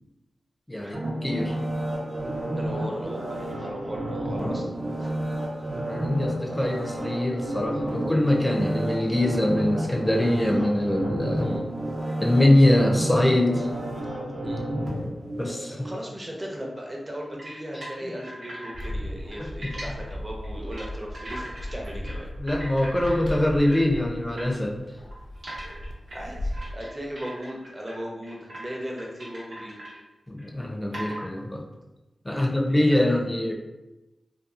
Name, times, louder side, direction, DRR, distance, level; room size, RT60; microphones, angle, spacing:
voice 1, 0.7-1.6 5.8-11.6 12.2-13.7 14.4-14.5 15.0-15.1 15.4-15.8 19.4-19.7 22.4-24.7 30.3-31.6 32.2-33.5, left 1 dB, 15° left, 0 dB, 0.5 m, -23 dB
sound 1, 0.9-16.0 16.4-16.5, right 1 dB, 60° right, 0.7 m, -31 dB
voice 2, 2.6-4.6 5.0-5.1 11.4-11.6 13.6-13.7 14.4-14.7 15.8-22.3 26.1-29.8 32.3-33.2, equal, 30° right, -1 dB, 0.7 m, -37 dB
sound 2, 17.4-18.9 19.2-19.9 20.4-20.9 21.1-22.1 22.4-23.9 24.4-24.5 25.1-28.0 28.2-28.7 29.0-30.0 30.4-30.5 30.9-31.3, right 1 dB, 90° right, 1.0 m, -39 dB
Bark, 18.7-26.7, equal, 80° left, 0.4 m, -36 dB
2.7 x 2.3 x 2.4 m, 1.0 s
cardioid pair, 50°, 0 cm